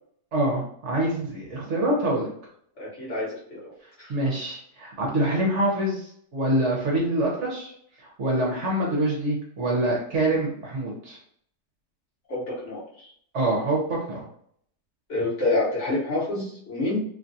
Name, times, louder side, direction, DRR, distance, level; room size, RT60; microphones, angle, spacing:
voice 1, 0.3-2.3 4.1-7.7 8.0-11.2 13.3-14.3, right 1 dB, 55° right, -3 dB, 1.0 m, -25 dB
voice 2, 2.8-3.7 4.0-4.1 12.3-13.1 15.1-17.0, left 2 dB, 50° left, -7 dB, 1.3 m, -28 dB
3.1 x 2.4 x 2.6 m, 0.64 s
omnidirectional pair, 1.7 m